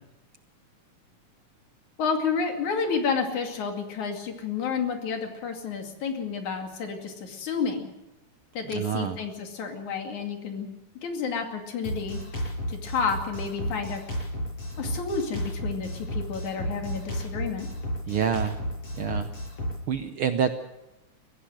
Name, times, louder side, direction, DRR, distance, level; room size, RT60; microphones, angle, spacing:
voice 1, 2.0-7.9 8.6-10.7 11.0-12.2 12.7-14.0 14.8-17.7, left 5 dB, 75° left, 4 dB, 3.9 m, -30 dB
voice 2, 8.7-9.2 18.1-18.6 19.0-19.3 19.9-20.5, right 8 dB, 65° right, 8 dB, 1.4 m, -27 dB
Drum kit, 11.8-19.8, equal, 55° left, 8.0 m, -33 dB
22.5 x 15.5 x 7.8 m, 0.99 s
omnidirectional pair, 3.4 m